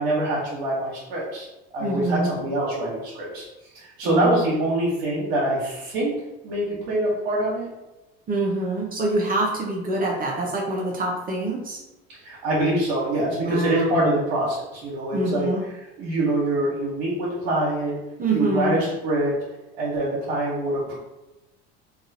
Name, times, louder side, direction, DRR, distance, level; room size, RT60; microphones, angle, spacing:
voice 1, 0.0-1.5 1.7-3.4 3.7-6.1 6.4-7.7 12.2-15.5 16.0-18.0 18.3-19.3 19.8-21.0, right 1 dB, 75° right, -6 dB, 1.1 m, -24 dB
voice 2, 1.8-2.3 4.0-4.6 8.3-11.8 13.3-14.1 15.1-15.6 18.2-18.8, right 2 dB, 30° right, -2 dB, 0.6 m, -26 dB
2.9 x 2.4 x 2.6 m, 0.99 s
hypercardioid pair, 85°, 31 cm